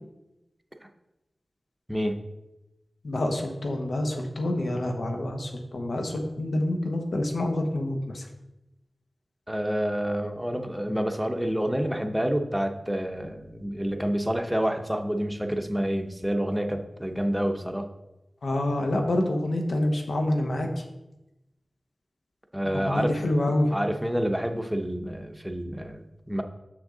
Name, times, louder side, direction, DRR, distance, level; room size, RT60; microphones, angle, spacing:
voice 1, 3.0-8.3 18.4-20.8 22.7-23.7, left 1 dB, 85° left, 2 dB, 1.1 m, -27 dB
voice 2, 9.5-17.9 22.5-23.3 23.7-26.4, equal, 5° right, 5 dB, 0.7 m, -28 dB
6.9 x 6.2 x 3.8 m, 0.95 s
wide cardioid pair, 90°, 0 cm